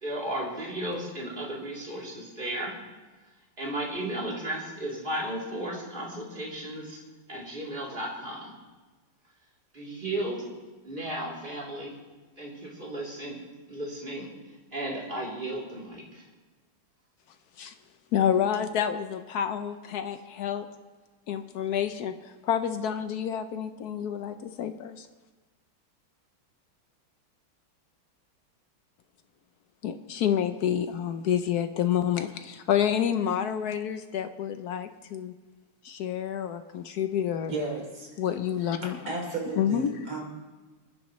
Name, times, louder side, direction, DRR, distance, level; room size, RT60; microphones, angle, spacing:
voice 1, 0.0-2.8 3.6-7.0 7.3-8.6 9.7-10.5 10.8-11.9 12.4-13.4 13.7-14.3 14.7-16.2, right 1 dB, 25° right, -4 dB, 3.3 m, -34 dB
voice 2, 18.1-20.7 21.3-25.1 29.8-35.3 35.8-37.5 38.2-39.0 39.6-39.9, left 9 dB, 70° left, 9 dB, 0.9 m, -28 dB
voice 3, 37.5-38.1 38.7-38.8 39.1-40.2, right 3 dB, 70° right, -1 dB, 4.0 m, -34 dB
26.0 x 10.5 x 3.1 m, 1.3 s
omnidirectional pair, 2.4 m